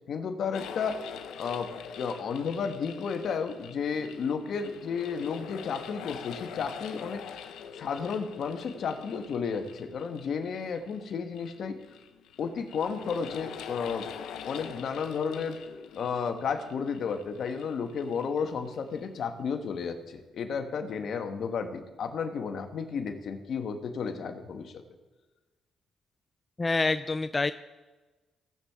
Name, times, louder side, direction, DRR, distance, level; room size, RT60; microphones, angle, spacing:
voice 1, 0.1-1.0 1.4-7.2 7.7-11.8 12.4-14.1 14.4-15.6 16.0-24.7, left 6 dB, 60° left, 6 dB, 1.2 m, -32 dB
sound 1, 0.5-19.1, left 8 dB, 85° left, 0.7 m, -44 dB
voice 2, 26.6-27.5, left 3 dB, 25° left, 11 dB, 0.3 m, -26 dB
18.0 x 7.2 x 3.5 m, 1.2 s
cardioid pair, 90°, 0 cm